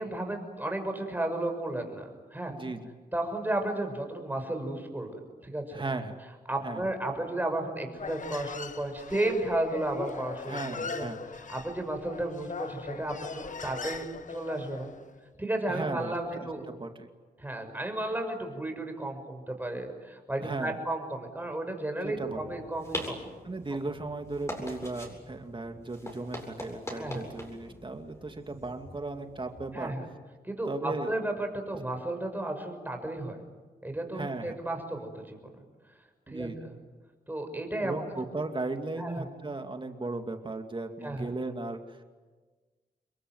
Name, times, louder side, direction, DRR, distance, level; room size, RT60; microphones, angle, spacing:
voice 1, 0.0-2.5 3.1-5.1 5.4-5.8 6.5-11.0 11.5-14.9 15.4-16.6 17.4-23.2 26.9-27.2 29.7-30.0 30.4-33.4 33.8-35.4 36.3-36.8 37.3-38.0 39.0-39.3 41.0-41.3, right 1 dB, 10° right, 4 dB, 6.4 m, -33 dB
voice 2, 2.5-2.9 5.7-6.2 6.6-6.9 10.5-11.2 15.7-17.1 20.4-20.8 22.0-22.4 23.4-29.9 30.7-31.1 34.1-34.6 36.3-36.6 37.8-42.0, right 2 dB, 30° right, 6 dB, 2.4 m, -36 dB
Human voice, 7.9-15.0, left 5 dB, 55° left, 1.4 m, -40 dB
sound 1, 22.2-29.7, left 1 dB, 15° left, 8.0 m, -42 dB
28.0 x 22.5 x 9.4 m, 1.4 s
cardioid pair, 80°, 16 cm